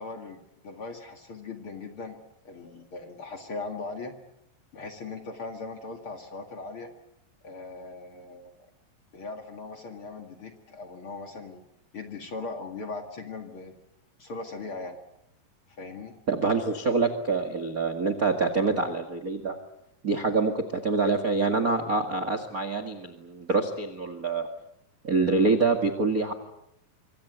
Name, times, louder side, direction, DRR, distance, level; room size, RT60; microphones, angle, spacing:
voice 1, 0.0-2.2 2.4-4.1 4.7-6.9 7.4-8.5 9.1-11.6 11.9-13.8 14.2-15.0 15.7-16.1, left 3 dB, 40° left, 4 dB, 2.3 m, -39 dB
voice 2, 16.3-19.6 20.0-24.5 25.0-26.3, right 3 dB, 40° right, 9 dB, 1.3 m, -26 dB
26.0 x 25.0 x 8.0 m, 0.80 s
omnidirectional pair, 4.7 m